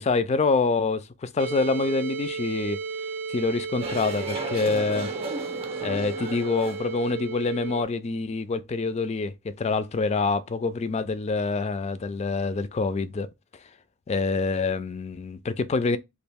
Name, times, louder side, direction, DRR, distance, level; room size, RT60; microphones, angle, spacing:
voice 1, 0.0-2.8 3.3-5.1 5.8-13.3 14.1-16.0, left 4 dB, 30° left, 0.3 m, -26 dB
sound 1, 1.4-7.8, right 4 dB, 75° right, 0.6 m, -34 dB
sound 2, 3.8-7.1, right 2 dB, 25° right, 0.6 m, -35 dB
3.0 x 2.5 x 3.4 m
head